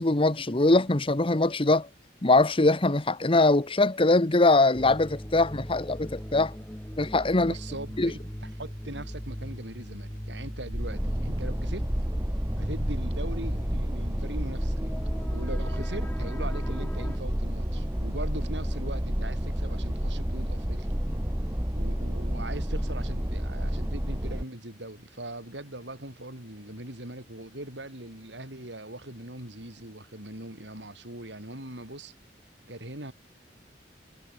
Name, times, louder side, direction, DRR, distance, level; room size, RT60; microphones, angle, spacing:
voice 1, 0.0-1.9 2.2-6.5 7.0-7.5 8.0-8.1, left 2 dB, 30° left, 1.2 m, -22 dB
sound 1, 4.7-17.2, equal, 10° left, 2.5 m, -39 dB
voice 2, 7.4-11.9 12.6-14.9 15.3-20.9 21.7-32.1 32.7-33.1, right 1 dB, 80° right, 7.6 m, -41 dB
sound 2, 10.7-24.4, equal, 15° right, 2.0 m, -30 dB
head